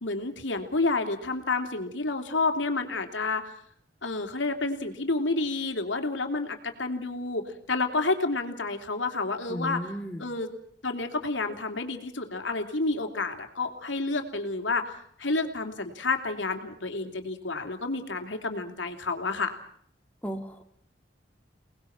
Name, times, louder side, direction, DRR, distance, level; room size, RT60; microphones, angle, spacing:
voice 1, 0.0-3.5 4.0-7.4 7.7-9.8 10.2-10.5 10.8-14.9 15.2-19.5, left 3 dB, 85° left, 5 dB, 3.1 m, -29 dB
voice 2, 9.5-10.3 20.2-20.6, equal, 10° left, 3 dB, 1.9 m, -34 dB
29.5 x 19.5 x 6.0 m, 0.66 s
head